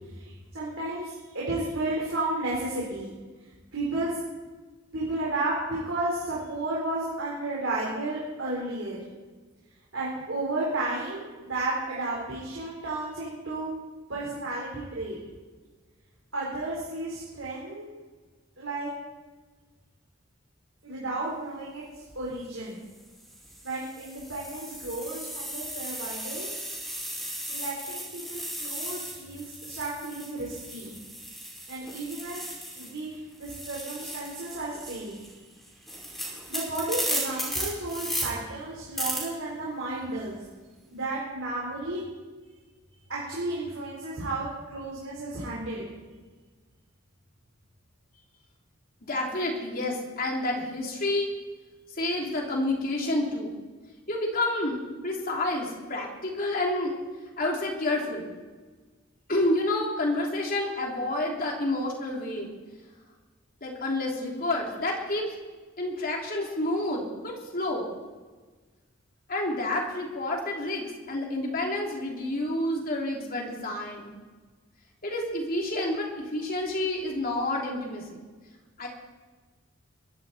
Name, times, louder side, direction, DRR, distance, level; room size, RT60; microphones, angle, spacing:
voice 1, 0.1-3.1 3.7-4.2 4.9-9.0 9.9-13.7 14.1-15.2 16.3-17.9 18.6-18.9 20.8-22.8 23.6-26.5 27.5-30.9 31.7-32.5 32.8-33.1 33.4-35.2 36.1-36.2 36.5-40.4 40.9-42.0 43.1-45.9, right 2 dB, 70° right, -6 dB, 4.2 m, -33 dB
sound 1, 21.9-22.1 22.9-33.0 33.3-38.2 39.0-39.2, equal, ahead, 5.2 m, -36 dB
voice 2, 49.0-51.3 51.9-53.5 54.1-56.9 57.4-58.3 59.3-62.5 63.6-65.3 65.8-67.9 69.3-74.1 75.0-78.2 78.8-78.9, left 1 dB, 45° left, -1 dB, 3.2 m, -29 dB
22.5 x 12.5 x 4.3 m, 1.4 s
head